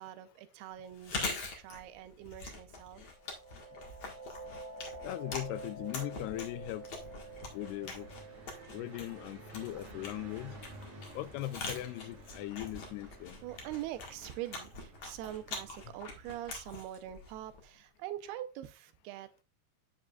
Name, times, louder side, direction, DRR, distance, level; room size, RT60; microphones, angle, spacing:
voice 1, 0.0-3.0 13.4-19.4, right 13 dB, 80° right, 2.6 m, -44 dB
Chewing mastication, 0.9-17.8, left 3 dB, 55° left, 1.4 m, -44 dB
sound 1, 3.0-12.5, right 3 dB, 20° right, 0.9 m, -49 dB
voice 2, 5.0-6.9 7.5-8.1 8.7-10.6 11.1-13.4, left 16 dB, 85° left, 2.6 m, -39 dB
Car passing by, 6.3-16.9, right 2 dB, 50° right, 2.1 m, -53 dB
7.5 x 7.3 x 2.3 m
omnidirectional pair, 4.6 m